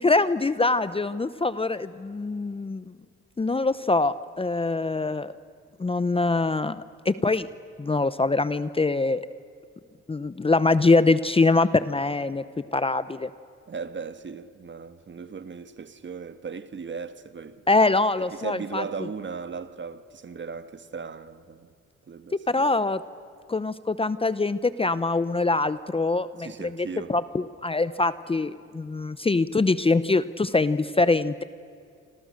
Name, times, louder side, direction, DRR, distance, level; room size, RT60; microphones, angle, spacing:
voice 1, 0.0-2.8 3.4-5.3 5.8-7.5 7.8-9.3 10.1-12.4 12.7-13.3 17.7-18.8 22.3-23.0 23.5-26.8 27.1-31.4, left 3 dB, 20° left, 0.7 m, -24 dB
voice 2, 13.7-17.6 18.3-21.7 22.1-22.6 26.4-27.1, right 5 dB, 40° right, 1.5 m, -37 dB
29.0 x 26.0 x 6.5 m
cardioid pair, 90°, 30 cm